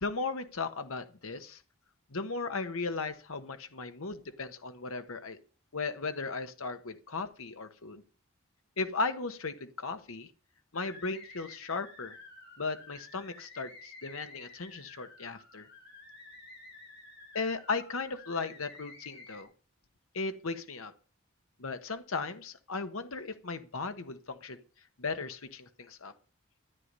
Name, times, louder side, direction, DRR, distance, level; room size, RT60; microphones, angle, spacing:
voice 1, 0.0-1.6 2.1-5.4 5.7-8.0 8.8-10.3 10.7-12.2 12.6-15.7 17.3-19.5 20.1-20.9 21.6-24.6 25.0-26.1, left 4 dB, 80° left, 8 dB, 1.2 m, -36 dB
sound 1, 10.7-19.4, left 3 dB, 55° left, 5.8 m, -52 dB
13.5 x 9.7 x 5.4 m, 0.38 s
head